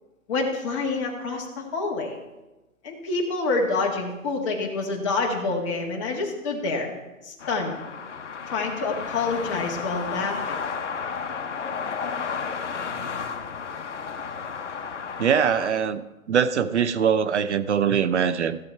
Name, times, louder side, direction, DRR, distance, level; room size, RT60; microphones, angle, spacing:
voice 1, 0.3-2.2 2.8-6.9 7.2-7.7 8.5-10.6, left 3 dB, 20° left, 0 dB, 1.5 m, -27 dB
sound 1, 7.4-15.7, left 6 dB, 55° left, 1.1 m, -32 dB
voice 2, 15.2-16.0 16.3-18.6, right 7 dB, 55° right, 13 dB, 0.7 m, -22 dB
15.5 x 7.0 x 4.6 m, 1.1 s
hypercardioid pair, 155°, 42 cm